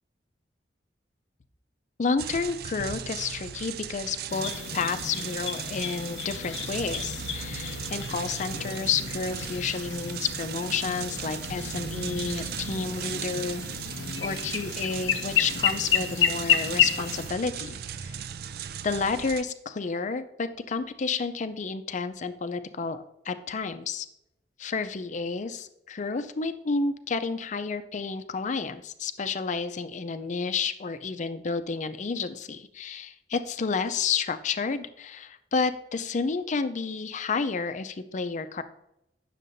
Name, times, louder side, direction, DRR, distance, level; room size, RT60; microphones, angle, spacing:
voice 1, 2.0-13.6 14.2-18.2 18.8-24.1 24.6-38.6, left 5 dB, 45° left, 11 dB, 0.5 m, -30 dB
sound 1, 2.2-19.4, right 8 dB, 60° right, 0.3 m, -37 dB
sound 2, 4.3-17.3, left 7 dB, 90° left, 0.6 m, -31 dB
9.1 x 6.6 x 2.6 m, 0.82 s
head